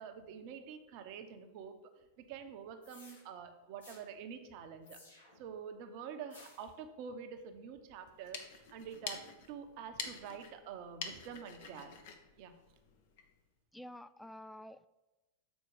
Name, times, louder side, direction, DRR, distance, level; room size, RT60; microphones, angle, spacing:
voice 1, 0.0-5.0 5.3-12.0 12.4-12.5, right 7 dB, 45° right, 6 dB, 0.9 m, -47 dB
sound 1, 2.8-3.2 3.8-4.0 4.8-5.5 6.3-6.7, left 2 dB, 70° left, 2.0 m, -57 dB
sound 2, 8.0-13.3, left 6 dB, 50° left, 0.9 m, -47 dB
voice 2, 13.7-14.9, left 1 dB, 5° left, 13 dB, 0.3 m, -49 dB
7.2 x 4.5 x 6.4 m, 1.1 s
figure-of-eight pair, 90°, 0 cm